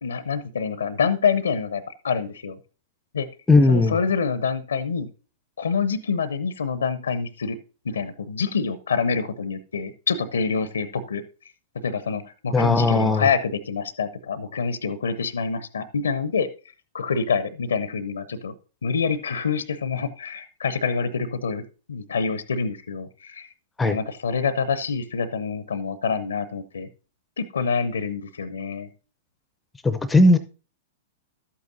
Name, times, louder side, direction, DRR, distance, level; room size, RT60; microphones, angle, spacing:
voice 1, 0.0-2.6 3.1-3.3 3.7-5.1 5.6-7.6 7.8-11.2 11.8-16.5 16.9-18.5 18.8-21.6 21.9-23.5 23.8-26.9 27.4-28.9, left 5 dB, 75° left, 15 dB, 0.6 m, -26 dB
voice 2, 3.5-4.0 12.5-13.3 23.8-24.0 29.8-30.4, left 2 dB, 10° left, 13 dB, 0.6 m, -17 dB
11.5 x 8.5 x 2.6 m, 0.35 s
figure-of-eight pair, 100°, 0 cm